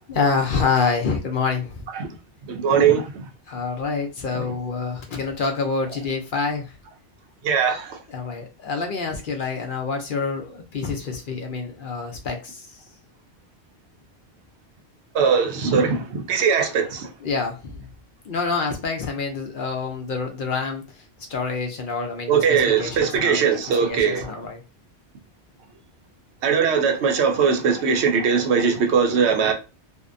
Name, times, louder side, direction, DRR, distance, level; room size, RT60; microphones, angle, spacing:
voice 1, 0.1-1.9 3.5-6.8 8.1-12.8 17.2-17.9 18.2-21.0 21.3-24.6, left 4 dB, 60° left, 0.6 m, -27 dB
voice 2, 2.5-3.0 4.3-4.4 7.4-8.0 15.1-17.1 22.3-24.2 26.4-29.5, right 6 dB, 80° right, 0.9 m, -20 dB
2.6 x 2.1 x 2.5 m
omnidirectional pair, 1.1 m